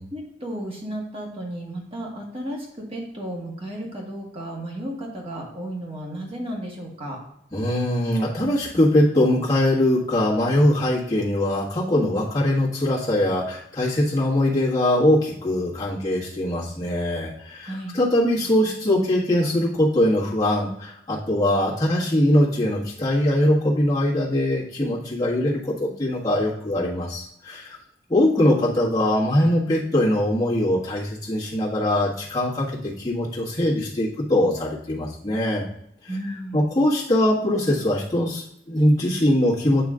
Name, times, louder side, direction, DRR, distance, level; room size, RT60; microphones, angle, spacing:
voice 1, 0.1-7.2 17.6-18.0 36.1-36.6, right 1 dB, 35° right, -1 dB, 1.5 m, -33 dB
voice 2, 7.5-27.8 28.1-35.6 36.5-39.8, left 1 dB, 20° left, -6 dB, 1.5 m, -22 dB
9.1 x 3.1 x 3.7 m, 0.74 s
head